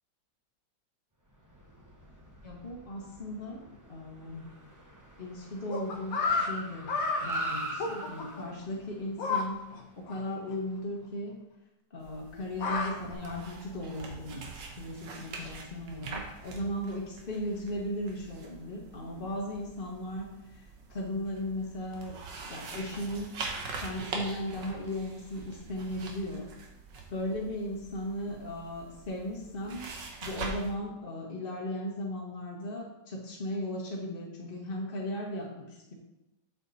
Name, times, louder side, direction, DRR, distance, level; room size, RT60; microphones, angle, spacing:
Car, 1.4-10.9, right 1 dB, 15° right, 0.7 m, -43 dB
voice 1, 2.4-4.5 5.2-9.6 10.0-11.4 11.9-22.2 22.5-23.3 23.8-26.5 27.1-35.9, left 1 dB, 35° left, -3 dB, 1.2 m, -37 dB
sound 1, 5.7-6.5 6.9-7.2 7.8-8.4 9.2-9.4 9.7-9.8 10.1-10.2 10.5-10.6 12.3-13.1, left 4 dB, 55° left, 1.4 m, -30 dB
sound 2, 12.0-30.7, right 4 dB, 85° right, 1.8 m, -44 dB
7.2 x 6.9 x 4.0 m, 0.93 s
omnidirectional pair, 1.9 m